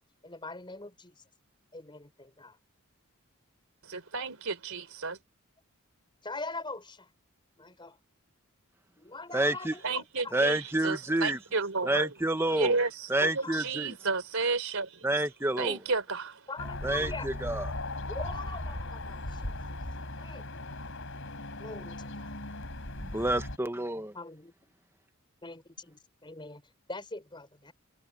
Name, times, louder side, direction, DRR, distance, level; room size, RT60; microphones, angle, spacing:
voice 1, 0.2-1.2 1.7-2.6 6.2-7.1 7.6-8.0 9.0-10.3 13.4-13.6 16.5-17.3 18.1-19.5 20.2-20.4 21.6-22.3 24.1-24.5 25.4-26.6 26.9-27.7, left 3 dB, 20° left, 4.5 m, -42 dB
voice 2, 3.8-5.2 9.8-12.2 12.6-15.1 15.6-16.4, right 4 dB, 70° right, 4.0 m, -32 dB
voice 3, 9.3-9.7 10.3-11.4 11.8-12.8 13.1-13.9 15.0-15.8 16.8-17.7 23.0-24.1, right 1 dB, 10° right, 1.3 m, -28 dB
sound 1, 16.6-23.6, left 1 dB, 60° left, 5.2 m, -38 dB
head